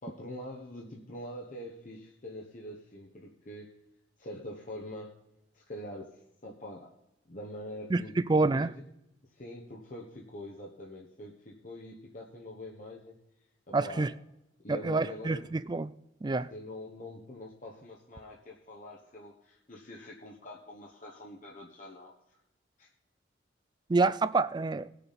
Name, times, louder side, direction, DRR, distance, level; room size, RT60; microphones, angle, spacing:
voice 1, 0.0-3.7 4.2-5.2 5.5-6.9 7.3-8.7 9.3-13.1 13.7-14.1 14.6-15.5 16.5-22.4 22.8-22.9, left 1 dB, 40° left, 1.1 m, -44 dB
voice 2, 7.9-8.7 13.7-14.1 14.7-15.9 16.2-16.5 23.9-24.9, right 3 dB, 20° right, 0.3 m, -27 dB
19.0 x 6.7 x 4.2 m
head